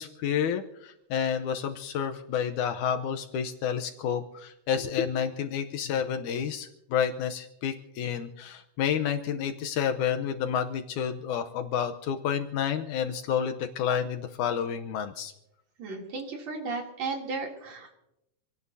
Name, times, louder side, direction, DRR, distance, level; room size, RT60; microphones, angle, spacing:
voice 1, 0.0-15.3, left 8 dB, 80° left, 6 dB, 2.3 m, -30 dB
voice 2, 15.8-17.9, right 3 dB, 60° right, -1 dB, 4.2 m, -34 dB
27.5 x 18.0 x 2.8 m, 0.84 s
omnidirectional pair, 3.5 m